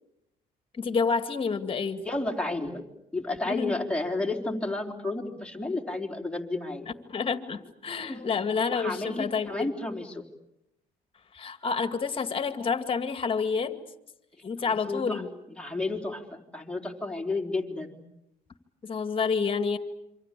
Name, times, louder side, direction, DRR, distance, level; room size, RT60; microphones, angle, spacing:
voice 1, 0.7-2.0 3.4-3.8 7.1-9.7 11.3-13.8 14.4-15.3 18.8-19.8, left 5 dB, 30° left, 10 dB, 2.3 m, -29 dB
voice 2, 2.0-2.8 3.1-6.9 8.1-8.4 8.7-10.2 14.6-15.2 15.6-18.0, left 2 dB, 5° left, 1 dB, 3.9 m, -32 dB
27.0 x 25.5 x 8.5 m, 0.85 s
cardioid pair, 110°, 17 cm